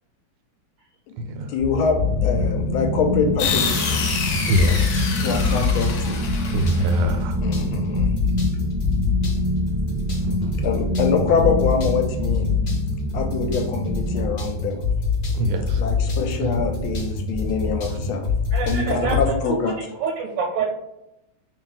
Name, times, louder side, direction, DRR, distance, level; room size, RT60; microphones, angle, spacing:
voice 1, 1.5-4.0 5.2-6.2 7.4-8.0 10.6-12.5 13.1-14.8 15.7-18.3 18.6-19.8, left 5 dB, 80° left, 3 dB, 1.4 m, -24 dB
sound 1, 1.6-19.3, left 4 dB, 50° left, 0.8 m, -25 dB
sound 2, 2.0-14.2, left 1 dB, 20° right, 0.9 m, -27 dB
sound 3, 3.4-7.1, left 5 dB, 65° left, 1.2 m, -27 dB
voice 2, 4.5-4.9 6.5-7.3 10.2-10.6 15.4-15.8 16.4-16.6, equal, 90° right, 6 dB, 1.5 m, -23 dB
voice 3, 18.5-20.6, right 5 dB, 75° right, 1 dB, 1.1 m, -27 dB
3.1 x 2.7 x 3.9 m, 0.87 s
omnidirectional pair, 2.3 m